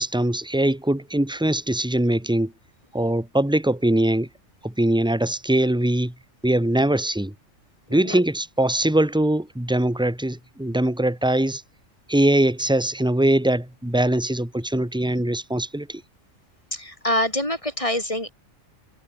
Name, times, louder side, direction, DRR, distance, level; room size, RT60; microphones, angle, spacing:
voice 1, 0.0-2.5 2.9-4.3 4.6-6.1 6.4-7.3 7.9-11.6 12.1-16.0, right 1 dB, 5° right, 2.2 m, -22 dB
voice 2, 7.9-8.2 16.7-18.3, left 1 dB, 25° left, 7.4 m, -25 dB
omnidirectional pair, 1.3 m